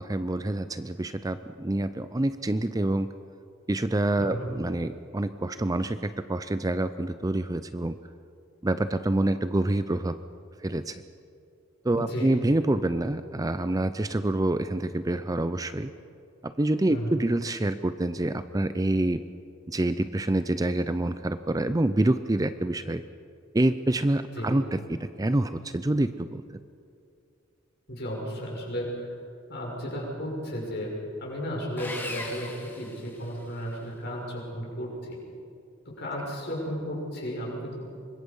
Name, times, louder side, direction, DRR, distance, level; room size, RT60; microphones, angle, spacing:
voice 1, 0.0-3.1 3.7-7.9 8.6-10.2 10.6-11.0 11.8-15.9 16.4-19.2 19.7-23.0 23.5-26.4, right 1 dB, 15° right, 11 dB, 0.5 m, -27 dB
voice 2, 11.9-12.4 16.9-17.1 24.3-24.5 27.9-28.9 29.5-30.9 31.2-32.5 32.8-35.2 36.0-37.8, equal, 55° left, -2 dB, 6.3 m, -34 dB
Sawing, 31.8-33.7, left 2 dB, 10° left, 2.1 m, -39 dB
25.0 x 21.5 x 5.5 m, 2.4 s
head